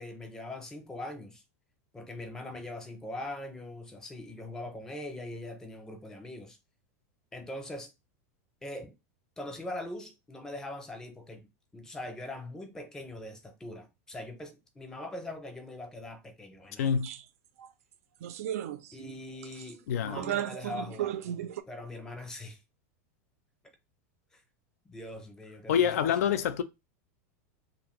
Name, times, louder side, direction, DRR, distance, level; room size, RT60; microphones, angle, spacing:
voice 1, 0.0-1.4 1.9-6.6 7.3-7.9 8.6-9.0 9.4-11.5 11.7-17.0 18.9-21.2 21.7-22.6 24.3-24.4 24.8-26.1, left 1 dB, 5° left, 0.5 m, -42 dB
voice 2, 16.8-17.1 19.9-20.2 25.7-26.6, left 8 dB, 80° left, 0.5 m, -26 dB
sound 1, 17.0-17.2 17.6-17.7 18.2-19.1 19.4-19.7 20.1-21.6, right 11 dB, 75° right, 0.4 m, -35 dB
2.6 x 2.6 x 2.9 m
supercardioid pair, 160°, 8 cm